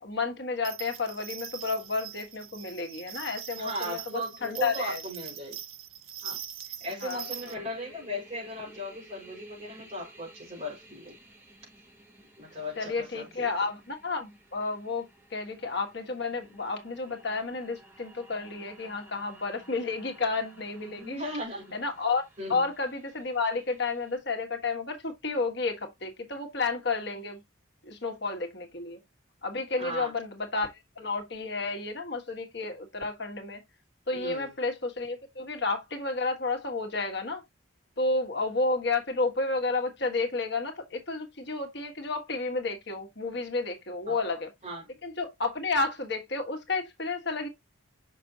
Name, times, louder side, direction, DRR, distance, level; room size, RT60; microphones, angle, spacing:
voice 1, 0.0-5.0 7.0-7.6 12.8-21.2 21.7-22.2 22.5-27.4 27.8-29.0 29.4-33.6 34.1-37.4 38.0-44.5 45.0-47.5, left 3 dB, 55° left, 1.5 m, -31 dB
sound 1, 0.6-7.5, right 10 dB, 90° right, 1.0 m, -42 dB
voice 2, 3.5-5.6 6.2-6.4 6.8-11.1 12.4-13.5 20.9-21.7 22.4-22.6 29.8-30.1 34.1-34.5 44.1-44.8, equal, 35° right, 5.2 m, -37 dB
sound 2, 7.1-24.2, right 1 dB, 10° right, 5.6 m, -55 dB
6.8 x 6.0 x 2.8 m
head